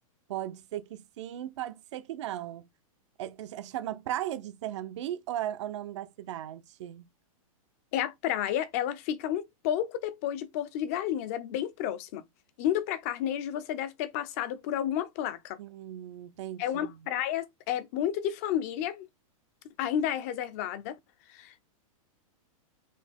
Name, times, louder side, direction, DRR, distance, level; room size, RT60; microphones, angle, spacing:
voice 1, 0.3-2.7 3.2-7.1 15.6-17.0, right 12 dB, 55° right, 0.5 m, -37 dB
voice 2, 7.9-12.2 12.6-15.6 16.6-19.1 19.8-21.0 21.3-21.6, left 10 dB, 25° left, 0.4 m, -31 dB
4.3 x 2.7 x 3.4 m
supercardioid pair, 175°, 18 cm